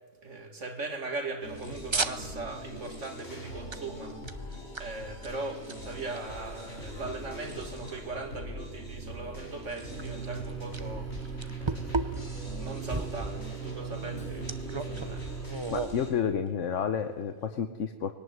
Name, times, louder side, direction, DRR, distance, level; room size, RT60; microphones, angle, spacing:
voice 1, 0.2-12.3 12.6-15.3, right 3 dB, 80° right, 2.7 m, -39 dB
sound 1, 1.3-3.0 3.7-3.8 4.1-6.2 6.6-6.7 7.4-7.5 7.9-8.0 10.0-10.8 11.1-12.4 12.8-13.3 14.5-15.9, right 3 dB, 25° right, 0.9 m, -33 dB
sound 2, 1.4-16.1, equal, 65° left, 5.5 m, -42 dB
sound 3, 9.9-15.6, right 7 dB, 60° right, 7.9 m, -39 dB
voice 2, 15.7-18.1, left 7 dB, 85° left, 1.3 m, -30 dB
21.5 x 18.0 x 9.4 m
omnidirectional pair, 1.2 m